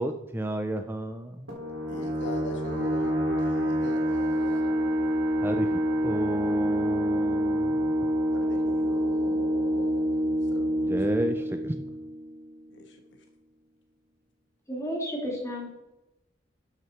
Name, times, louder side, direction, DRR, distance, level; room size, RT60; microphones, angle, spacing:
voice 1, 0.0-1.5 5.4-7.9 10.9-11.7, right 1 dB, 10° right, 6 dB, 0.5 m, -32 dB
sound 1, 1.5-12.8, equal, 90° right, 3.7 m, -27 dB
voice 2, 1.9-5.0 8.3-11.0 12.7-13.0, left 2 dB, 70° left, 4 dB, 1.4 m, -42 dB
voice 3, 14.7-15.9, equal, 15° left, -2 dB, 3.1 m, -33 dB
11.5 x 6.2 x 4.5 m, 0.93 s
head